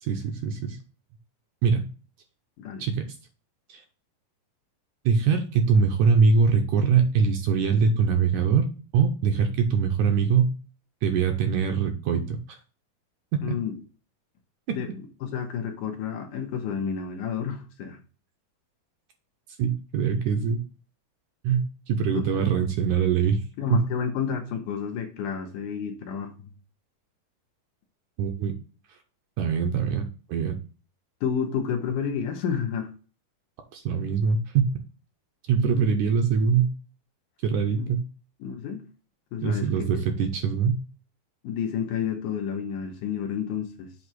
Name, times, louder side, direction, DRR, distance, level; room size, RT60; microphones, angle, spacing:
voice 1, 0.0-0.8 1.6-1.9 2.8-3.0 3.7-3.8 5.1-8.7 8.9-10.5 11.0-12.6 19.6-20.6 21.4-23.4 23.7-23.9 28.2-28.5 29.4-30.6 33.7-34.8 35.5-36.7 37.4-38.0 39.4-40.8, right 6 dB, 75° right, 2.0 m, -23 dB
voice 2, 13.4-13.7 14.7-14.9 15.2-18.0 22.1-22.4 23.6-26.3 31.2-32.9 35.7-35.9 37.8-37.9 38.4-38.9 39.3-40.0 41.4-43.9, left 7 dB, 70° left, 2.5 m, -30 dB
8.0 x 3.0 x 6.1 m
omnidirectional pair, 4.0 m